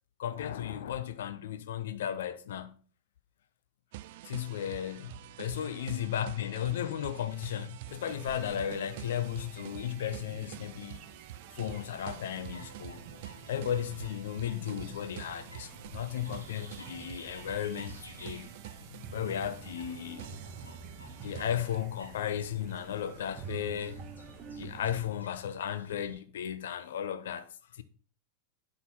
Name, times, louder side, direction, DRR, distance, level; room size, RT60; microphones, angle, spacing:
voice 1, 0.2-2.8 4.2-11.0 11.6-13.0 13.5-18.5 18.9-20.2 21.2-24.0 24.6-27.8, left 10 dB, 60° left, 0.5 m, -35 dB
sound 1, 3.9-21.8, right 14 dB, 50° right, 0.4 m, -47 dB
sound 2, 7.9-25.1, right 6 dB, 35° right, 0.9 m, -49 dB
sound 3, 11.6-26.2, left 2 dB, 80° left, 1.2 m, -53 dB
9.2 x 3.9 x 4.1 m
figure-of-eight pair, 90°, 0 cm